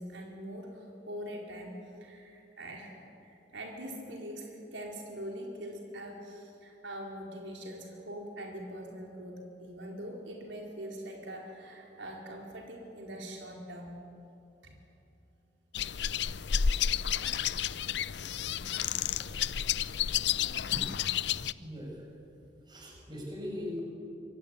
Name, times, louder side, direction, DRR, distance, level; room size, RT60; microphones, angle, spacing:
voice 1, 0.0-13.9 14.6-14.7, equal, 85° right, 0 dB, 4.7 m, -43 dB
sound 1, 15.7-21.5, left 8 dB, 65° left, 0.6 m, -31 dB
voice 2, 21.6-22.1 22.7-23.8, left 1 dB, 25° right, 0 dB, 7.3 m, -39 dB
26.0 x 23.5 x 9.8 m, 2.7 s
head